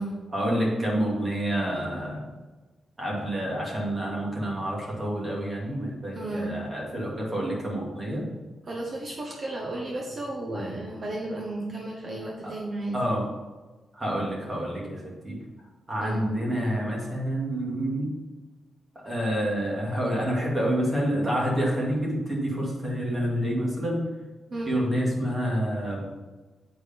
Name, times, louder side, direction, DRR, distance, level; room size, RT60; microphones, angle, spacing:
voice 1, 0.3-2.2 3.0-8.3 12.9-13.2 13.9-15.4 15.9-18.1 19.0-24.0 24.7-26.0, equal, 20° right, -4 dB, 2.3 m, -28 dB
voice 2, 6.1-6.5 8.6-13.0 16.0-16.3 24.5-24.7, right 2 dB, 35° right, -2 dB, 1.1 m, -33 dB
8.1 x 4.8 x 5.2 m, 1.2 s
wide cardioid pair, 155°, 0 cm